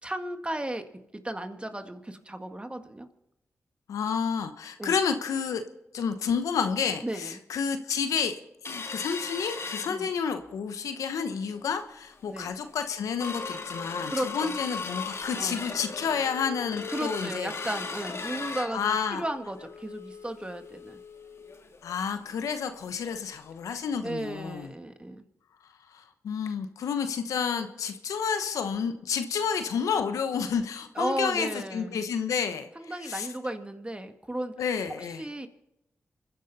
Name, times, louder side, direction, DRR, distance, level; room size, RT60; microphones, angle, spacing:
voice 1, 0.0-0.9 1.2-3.1 4.8-5.0 7.0-7.4 9.9-10.1 12.3-12.5 14.1-14.6 15.3-15.6 16.7-21.0 24.0-25.2 31.0-32.0 32.8-34.5 35.2-35.5, right 1 dB, 20° right, 7 dB, 1.9 m, -34 dB
voice 2, 3.9-5.6 5.9-8.4 8.7-17.5 18.7-19.2 21.8-24.7 25.9-33.3 34.6-35.2, left 6 dB, 90° left, 8 dB, 0.9 m, -30 dB
sound 1, 8.6-10.5 10.9-11.0 11.4-11.7 12.2-12.3 12.6-23.2 23.5-23.6 23.9-24.1 24.6-24.7, left 4 dB, 55° left, 1.7 m, -38 dB
27.5 x 11.0 x 4.2 m, 0.89 s
supercardioid pair, 40°, 5 cm